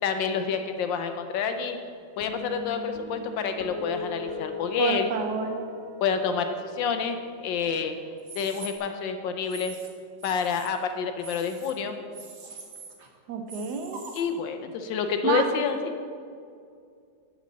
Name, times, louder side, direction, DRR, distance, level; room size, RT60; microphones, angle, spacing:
voice 1, 0.0-1.8 2.2-5.2 6.0-8.0 8.3-9.7 10.2-12.0 14.1-15.9, left 6 dB, 75° left, 7 dB, 1.4 m, -28 dB
Guitar, 2.2-8.8, left 5 dB, 50° left, 1.5 m, -40 dB
voice 2, 4.8-5.6 13.3-14.1 15.2-15.4, right 6 dB, 70° right, 5 dB, 1.1 m, -29 dB
sound 1, 8.2-8.7 9.4-9.9 10.2-10.7 11.2-11.7 12.1-13.1 13.5-14.2, right 4 dB, 45° right, 1.0 m, -43 dB
10.5 x 4.1 x 7.3 m, 2.3 s
omnidirectional pair, 2.1 m